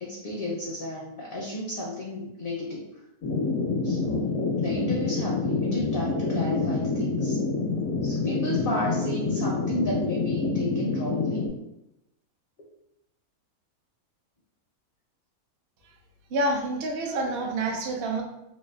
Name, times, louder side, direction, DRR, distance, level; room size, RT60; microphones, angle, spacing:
voice 1, 0.0-2.9 3.8-7.4 8.0-11.5, left 2 dB, 60° left, -3 dB, 0.6 m, -33 dB
sound 1, 3.2-11.5, left 3 dB, 85° left, 1.1 m, -27 dB
voice 2, 16.3-18.2, right 2 dB, 65° right, 1 dB, 0.6 m, -27 dB
3.1 x 2.7 x 2.2 m, 0.87 s
omnidirectional pair, 1.5 m